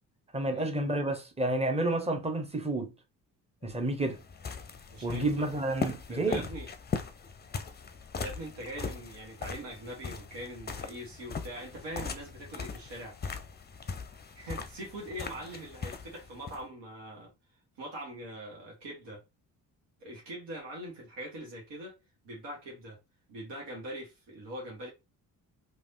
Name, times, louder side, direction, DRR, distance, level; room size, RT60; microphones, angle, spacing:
voice 1, 0.3-2.9 3.6-4.2 5.0-6.4, right 2 dB, 15° right, 1.0 m, -30 dB
sound 1, 3.7-16.6, left 5 dB, 25° left, 0.6 m, -40 dB
voice 2, 4.9-5.5 6.1-6.7 8.2-13.2 14.4-17.3 17.8-19.2 20.0-21.9 22.2-23.0 23.3-24.9, right 1 dB, 75° right, 1.3 m, -42 dB
3.2 x 2.5 x 2.7 m
hypercardioid pair, 45°, 44 cm